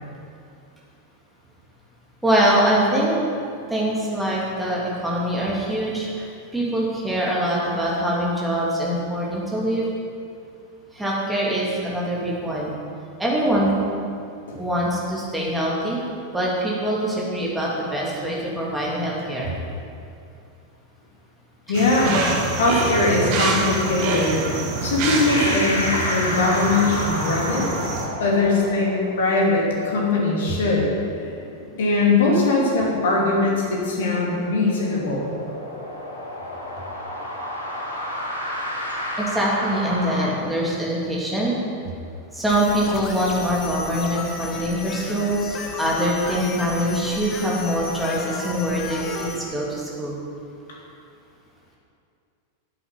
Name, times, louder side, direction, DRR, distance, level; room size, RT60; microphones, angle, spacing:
voice 1, 2.2-3.1 3.7-9.9 10.9-12.7 13.2-13.7 14.6-16.0 16.3-19.5 39.2-41.5 42.3-50.1, equal, 5° right, -5 dB, 3.0 m, -23 dB
voice 2, 21.7-22.2 22.5-24.4 24.8-27.7 28.2-30.9 31.8-35.3, left 3 dB, 60° left, -2 dB, 2.7 m, -21 dB
sound 1, 21.7-28.1, right 3 dB, 45° right, 1.7 m, -26 dB
sound 2, 25.3-40.3, left 1 dB, 80° left, 1.8 m, -32 dB
sound 3, 42.5-49.4, left 4 dB, 30° left, 1.2 m, -34 dB
10.5 x 8.3 x 5.9 m, 2.4 s
figure-of-eight pair, 90°, 0 cm